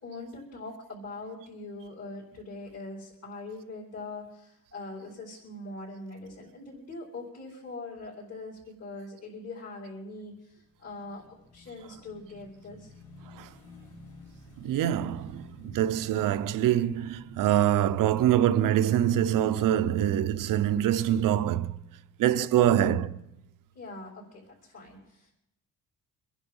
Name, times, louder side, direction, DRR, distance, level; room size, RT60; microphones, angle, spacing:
voice 1, 0.0-12.9 22.6-22.9 23.8-25.3, left 2 dB, 45° left, 5.3 m, -42 dB
Motorcycle / Engine, 10.6-19.1, equal, 65° left, 5.3 m, -52 dB
voice 2, 14.6-21.7 22.2-23.2, right 11 dB, 70° right, 0.9 m, -25 dB
24.5 x 10.5 x 5.5 m
cardioid pair, 130°, 34 cm